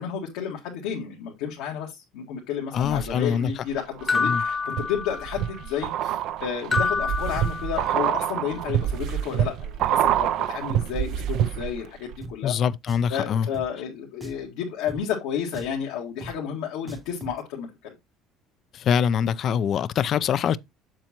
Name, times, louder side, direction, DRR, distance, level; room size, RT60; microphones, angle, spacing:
voice 1, 0.0-12.5 13.1-17.9, left 8 dB, 85° left, 1.9 m, -31 dB
voice 2, 2.7-3.5 4.1-4.4 12.4-13.5 18.7-20.6, left 8 dB, 50° left, 0.5 m, -24 dB
sound 1, 2.8-3.5 4.0-11.9 12.1-12.2, right 11 dB, 65° right, 0.5 m, -27 dB
sound 2, 4.1-5.6 6.7-8.2, left 4 dB, 20° left, 0.9 m, -27 dB
Drum, 12.2-12.3 12.9-13.1 13.5-13.7 14.2-14.5 14.9-15.0 15.5-15.8 16.2-16.3 16.9-17.4, right 1 dB, 15° right, 0.8 m, -40 dB
7.4 x 7.1 x 3.0 m
supercardioid pair, 105°, 0 cm